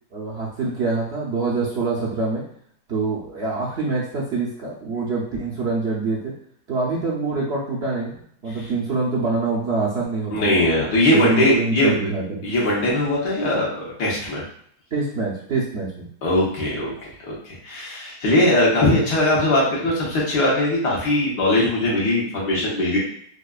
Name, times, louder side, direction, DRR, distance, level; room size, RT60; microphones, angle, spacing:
voice 1, 0.1-2.4 2.9-6.3 6.7-8.1 8.4-10.6 11.1-12.4 14.9-16.1, right 3 dB, 60° right, -5 dB, 0.7 m, -25 dB
voice 2, 10.3-11.9 12.4-14.4 16.2-23.0, left 1 dB, 80° left, -5 dB, 1.7 m, -20 dB
4.8 x 2.2 x 2.4 m, 0.65 s
omnidirectional pair, 1.8 m